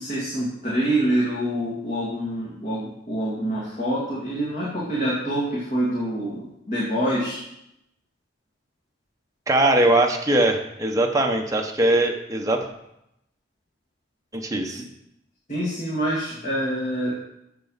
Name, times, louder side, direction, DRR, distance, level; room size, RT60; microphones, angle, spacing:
voice 1, 0.0-7.4 15.5-17.1, right 1 dB, 40° left, -7 dB, 2.2 m, -26 dB
voice 2, 9.5-12.7 14.3-14.8, right 1 dB, 15° right, 2 dB, 0.9 m, -21 dB
7.7 x 7.5 x 5.7 m, 0.81 s
head